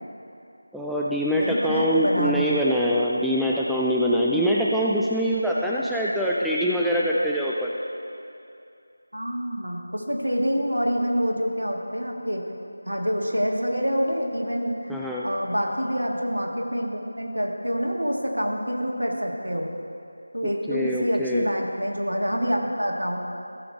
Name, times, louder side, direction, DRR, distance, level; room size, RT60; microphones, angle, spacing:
voice 1, 0.7-7.7 14.9-15.3 20.7-21.5, equal, ahead, -6 dB, 0.3 m, -24 dB
voice 2, 1.3-2.6 9.1-12.4 12.9-14.9 15.2-19.7 20.3-23.2, equal, 75° right, 0 dB, 1.8 m, -26 dB
15.0 x 7.0 x 4.6 m, 2.6 s
figure-of-eight pair, 165°, 0 cm